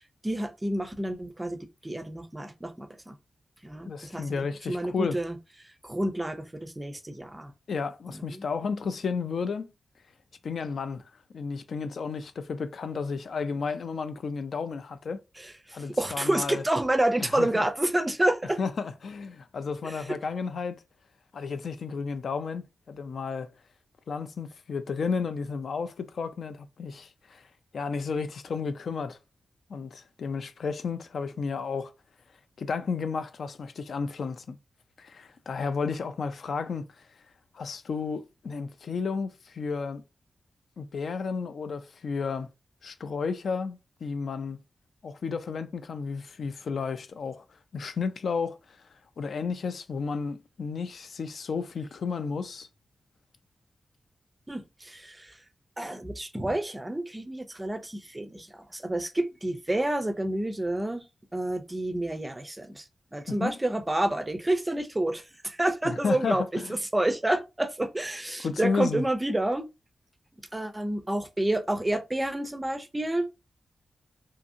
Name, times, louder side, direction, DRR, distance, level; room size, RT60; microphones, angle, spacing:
voice 1, 0.2-3.2 3.6-5.4 5.8-7.5 8.1-8.4 15.4-18.6 19.8-20.0 54.5-55.4 55.8-61.0 61.3-62.8 63.1-66.6 66.9-69.7 70.5-73.3, right 1 dB, 15° right, 0.4 m, -29 dB
voice 2, 3.9-5.2 7.7-9.7 10.4-11.0 11.3-15.2 15.7-16.6 17.2-17.6 18.6-20.8 21.3-23.5 24.1-27.5 27.7-29.2 29.7-31.9 32.6-34.6 35.0-37.1 37.5-40.0 40.8-42.5 42.8-44.6 45.0-47.4 47.7-48.8 49.2-52.7 63.4-63.5 65.8-66.7 68.4-69.0, left 5 dB, 70° left, 0.3 m, -32 dB
2.7 x 2.6 x 2.5 m
wide cardioid pair, 135°, 0 cm